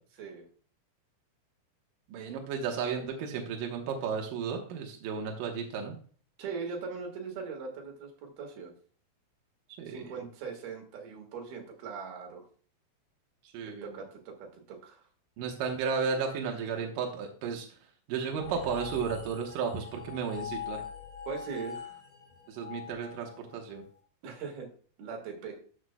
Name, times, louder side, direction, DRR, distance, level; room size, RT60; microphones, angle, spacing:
voice 1, 2.1-6.0 9.8-10.0 13.5-13.9 15.4-17.7 18.1-20.8 22.5-23.8, right 6 dB, 75° right, 2 dB, 2.0 m, -33 dB
voice 2, 6.4-8.7 9.9-12.4 13.8-15.0 21.3-22.0 24.2-24.7 25.0-25.6, right 5 dB, 60° right, 2 dB, 3.2 m, -40 dB
sound 1, 18.4-23.8, left 7 dB, 10° left, 3.3 m, -43 dB
12.5 x 6.9 x 2.2 m, 0.43 s
omnidirectional pair, 5.6 m